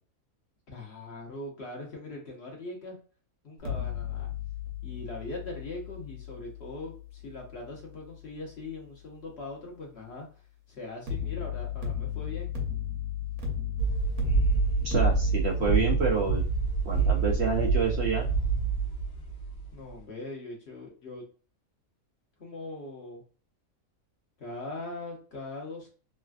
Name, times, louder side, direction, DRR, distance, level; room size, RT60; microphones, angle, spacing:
voice 1, 0.7-3.0 3.4-4.3 4.8-10.3 10.7-12.5 19.7-21.2 22.4-23.2 24.4-25.9, left 2 dB, 50° left, -1 dB, 1.1 m, -41 dB
sound 1, 3.6-8.7 11.1-15.8, left 9 dB, 90° right, 1.3 m, -35 dB
sound 2, 13.8-19.9, right 4 dB, 90° left, 1.2 m, -27 dB
voice 2, 14.8-16.4 16.8-18.3, right 5 dB, 65° right, 0 dB, 0.7 m, -28 dB
3.3 x 2.4 x 2.3 m, 0.37 s
omnidirectional pair, 1.5 m